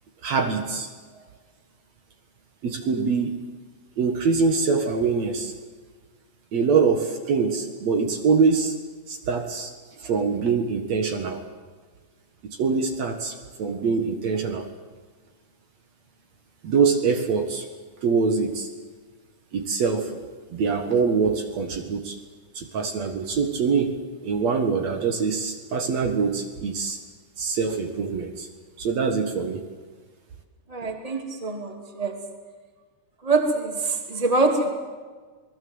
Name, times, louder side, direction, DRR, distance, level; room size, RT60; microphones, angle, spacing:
voice 1, 0.2-0.9 2.6-3.4 4.0-5.5 6.5-8.8 9.1-9.7 10.0-11.4 12.4-14.7 16.6-17.7 18.0-18.7 19.5-20.1 20.5-22.2 22.5-24.0 24.2-27.0 27.4-28.5 28.8-29.6, right 5 dB, 60° right, 5 dB, 2.9 m, -24 dB
voice 2, 30.7-32.2 33.2-34.7, right 3 dB, 10° right, 4 dB, 2.6 m, -24 dB
27.5 x 20.0 x 8.0 m, 1.4 s
omnidirectional pair, 3.6 m